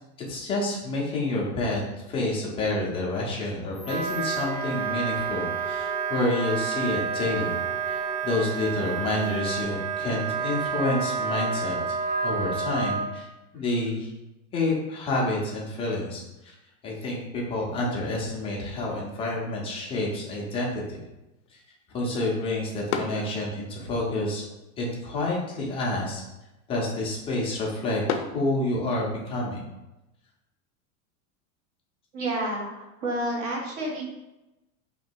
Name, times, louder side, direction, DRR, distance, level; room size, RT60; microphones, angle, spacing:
voice 1, 0.3-1.8 2.1-7.6 7.9-11.9 12.2-13.3 13.5-14.1 14.5-16.5 16.8-21.0 21.9-24.4 24.8-26.2 26.7-29.6, left 2 dB, 15° left, -3 dB, 0.4 m, -28 dB
sound 1, 3.7-9.6, equal, 10° right, 1.1 m, -45 dB
Wind instrument woodwind instrument, 3.8-13.1, right 6 dB, 85° right, 0.8 m, -29 dB
sound 2, 19.1-29.2, left 7 dB, 60° left, 0.6 m, -40 dB
voice 2, 32.1-34.0, right 1 dB, 45° right, -2 dB, 1.2 m, -30 dB
3.1 x 2.9 x 4.4 m, 0.97 s
supercardioid pair, 155°, 42 cm